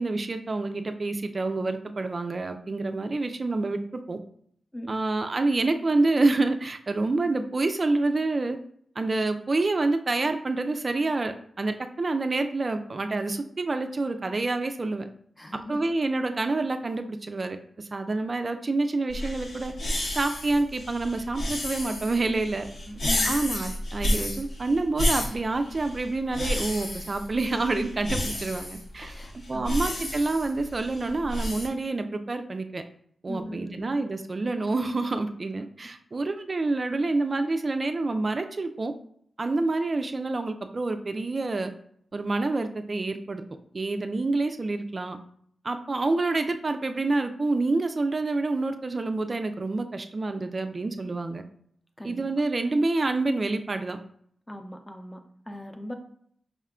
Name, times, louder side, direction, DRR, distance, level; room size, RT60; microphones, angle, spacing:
voice 1, 0.0-4.2 4.9-8.6 9.0-15.1 15.7-19.7 20.2-22.7 23.2-32.8 33.2-38.9 39.4-41.7 42.1-43.4 43.7-45.2 45.6-51.4 52.0-54.0, right 2 dB, 45° right, 7 dB, 0.3 m, -27 dB
voice 2, 15.4-15.9 22.8-23.4 29.0-29.7 33.3-33.9 52.0-52.2 54.5-55.9, left 1 dB, 15° left, 5 dB, 0.6 m, -39 dB
sound 1, 19.1-31.7, left 1 dB, 70° left, 1.0 m, -31 dB
4.9 x 2.2 x 3.6 m, 0.65 s
cardioid pair, 60°, 0 cm